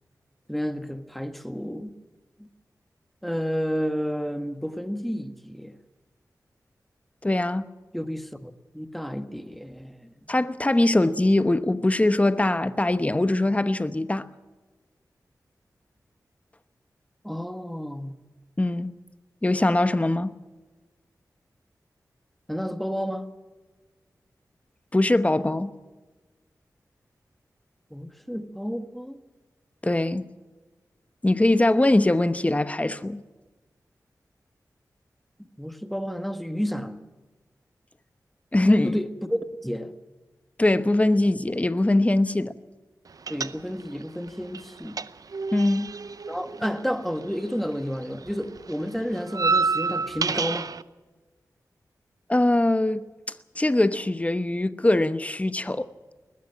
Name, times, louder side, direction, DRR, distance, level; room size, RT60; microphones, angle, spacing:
voice 1, 0.5-1.9 2.4-2.5 3.2-5.7 7.9-10.1 17.2-18.2 22.5-23.3 27.9-29.2 35.4-37.0 38.8-39.9 43.3-45.0 46.3-50.7, equal, ahead, 1.5 m, -31 dB
voice 2, 7.2-7.6 10.3-14.3 18.6-18.9 19.4-20.3 24.9-25.7 29.8-30.2 31.2-33.2 38.5-39.0 40.6-42.6 45.5-45.9 52.3-53.0 53.5-55.9, left 1 dB, 20° left, 1.0 m, -22 dB
sound 1, 43.3-44.0 44.3-47.7 47.9-50.8, right 4 dB, 65° right, 0.7 m, -29 dB
20.0 x 14.0 x 9.0 m
cardioid pair, 60°, 7 cm